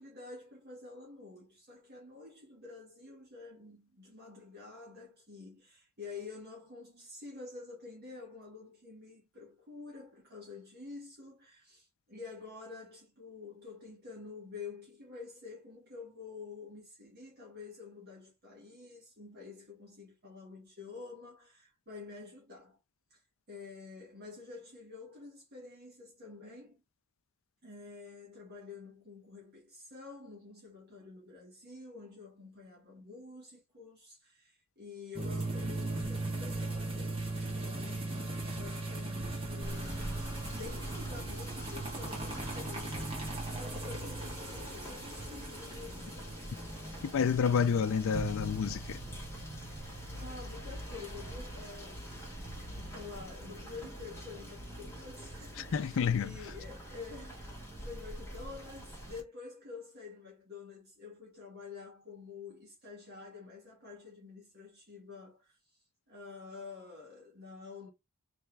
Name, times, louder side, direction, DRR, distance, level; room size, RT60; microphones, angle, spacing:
voice 1, 0.0-22.8 23.1-26.8 27.6-46.7 50.1-67.9, left 4 dB, 45° right, 1.6 m, -49 dB
sound 1, 35.1-52.6 52.8-52.9 53.2-53.3 53.7-53.8 54.1-54.2, right 2 dB, 25° right, 1.4 m, -39 dB
Bowed string instrument, 35.5-40.6, left 4 dB, 5° right, 0.8 m, -55 dB
Rain / Motor vehicle (road), 39.6-59.2, equal, 10° left, 1.5 m, -44 dB
voice 2, 47.0-49.0 55.6-56.4, left 6 dB, 60° left, 0.4 m, -29 dB
3.3 x 3.2 x 3.3 m
head